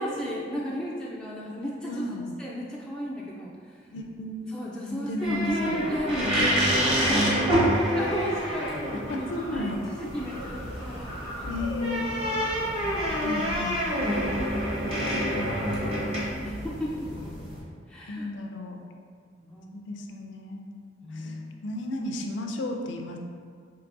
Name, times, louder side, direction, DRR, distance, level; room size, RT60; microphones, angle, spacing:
voice 1, 0.0-3.8 4.5-7.6 7.9-8.8 9.5-11.1 11.4-11.6 12.6-13.0 14.1-14.5 16.4-17.1 17.9-18.3 19.4-19.8 21.0-21.7, equal, 5° left, -6 dB, 0.3 m, -34 dB
voice 2, 1.9-2.3 3.9-4.5 4.9-5.8 6.4-6.5 7.2-7.4 8.9-9.8 11.4-12.2 13.0-14.2 15.1-15.4 18.1-18.8 19.7-20.7 21.1-23.2, left 2 dB, 80° left, 3 dB, 0.4 m, -34 dB
sound 1, 5.2-17.6, equal, 30° right, 1.1 m, -28 dB
Fowl, 7.3-16.2, equal, 75° right, 1.3 m, -43 dB
4.7 x 2.9 x 2.5 m, 2.1 s
head